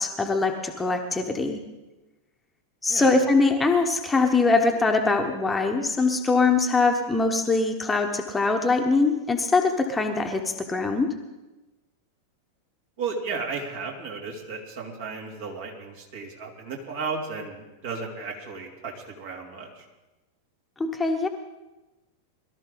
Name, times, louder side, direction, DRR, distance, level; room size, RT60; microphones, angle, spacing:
voice 1, 0.0-1.6 2.8-11.1 20.8-21.3, left 3 dB, 10° left, 4 dB, 1.2 m, -22 dB
voice 2, 13.0-19.7, right 4 dB, 55° right, 0 dB, 3.0 m, -34 dB
21.5 x 13.0 x 3.9 m, 1.1 s
figure-of-eight pair, 90°, 0 cm